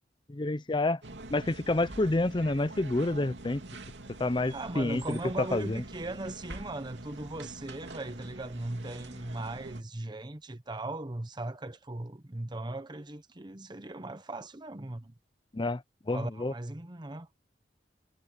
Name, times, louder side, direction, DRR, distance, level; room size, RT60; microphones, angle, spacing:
voice 1, 0.3-1.0 1.3-3.6 4.2-5.8 15.5-16.5, left 2 dB, 25° left, 0.6 m, -29 dB
sound 1, 1.0-9.8, right 2 dB, 80° right, 2.8 m, -45 dB
voice 2, 4.5-15.1 16.1-17.3, right 2 dB, 25° right, 1.0 m, -38 dB
head